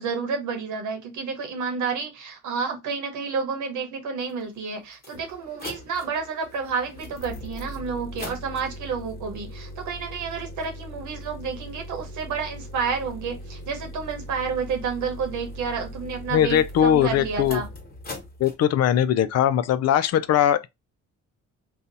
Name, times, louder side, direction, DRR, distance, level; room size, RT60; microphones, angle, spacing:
voice 1, 0.0-17.7, right 5 dB, 75° right, 0.9 m, -30 dB
sound 1, 4.3-4.4 4.9-18.5, equal, 30° left, 1.3 m, -39 dB
voice 2, 16.3-17.6 18.4-20.7, left 10 dB, 55° left, 0.4 m, -20 dB
2.7 x 2.3 x 3.9 m
cardioid pair, 90°, 30 cm